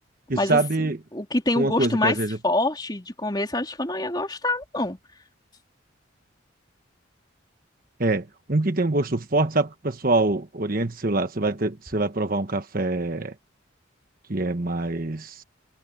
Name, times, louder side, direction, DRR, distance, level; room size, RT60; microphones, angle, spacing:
voice 1, 0.3-1.0 1.6-2.4 8.0-13.3 14.3-15.4, right 2 dB, 45° right, 1.2 m, -25 dB
voice 2, 1.1-2.2 2.4-5.0, left 2 dB, 20° left, 3.7 m, -25 dB
head